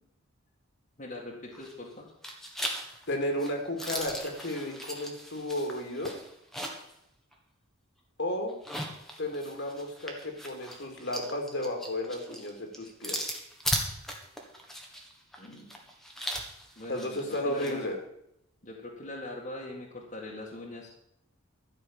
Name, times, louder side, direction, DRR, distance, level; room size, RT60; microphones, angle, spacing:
voice 1, 1.0-2.1 15.4-15.7 16.8-17.8 18.6-20.9, left 1 dB, 35° left, -2 dB, 2.0 m, -41 dB
Hyacinthe jean pants button belt zipper edited, 1.5-1.9 2.2-6.9 7.3-7.4 8.5-17.8, equal, ahead, 1.6 m, -38 dB
voice 2, 3.1-6.1 8.2-8.6 9.2-13.3 16.9-18.0, left 1 dB, 55° left, 3 dB, 2.5 m, -33 dB
12.5 x 6.2 x 8.7 m, 0.79 s
head